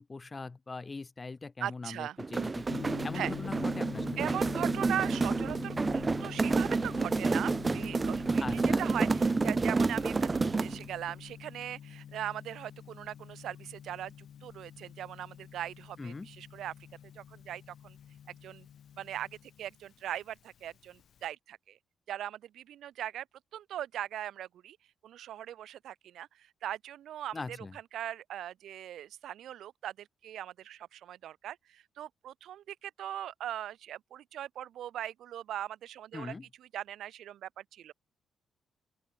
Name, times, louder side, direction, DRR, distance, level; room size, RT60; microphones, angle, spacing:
voice 1, 0.0-4.3 8.4-8.9 16.0-16.3 27.3-27.8 36.1-36.5, left 3 dB, 25° left, 1.4 m, -41 dB
voice 2, 1.6-2.2 3.1-3.3 4.2-14.1 14.4-16.7 17.1-18.0 18.3-18.7 19.0-21.8 22.1-23.2 23.5-24.8 25.0-27.6 27.9-36.3 36.7-37.9, right 11 dB, 80° right, 0.7 m, -40 dB
sound 1, 2.2-10.9, right 3 dB, 25° right, 0.3 m, -29 dB
Gong, 2.6-21.3, left 9 dB, 65° left, 1.3 m, -46 dB
open air
cardioid pair, 110°, 0 cm